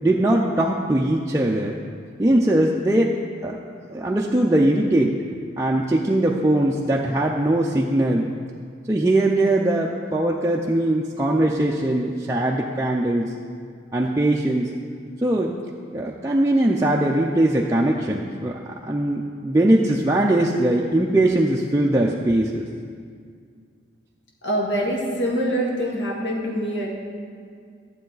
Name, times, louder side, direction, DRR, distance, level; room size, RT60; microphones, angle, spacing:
voice 1, 0.0-1.8 2.2-3.6 3.9-5.1 5.6-8.3 8.9-13.3 13.9-14.7 15.2-15.6 15.9-22.7, right 1 dB, 15° right, -2 dB, 0.4 m, -21 dB
voice 2, 24.4-27.0, equal, 80° left, -2 dB, 1.7 m, -24 dB
12.5 x 7.5 x 3.9 m, 2.2 s
head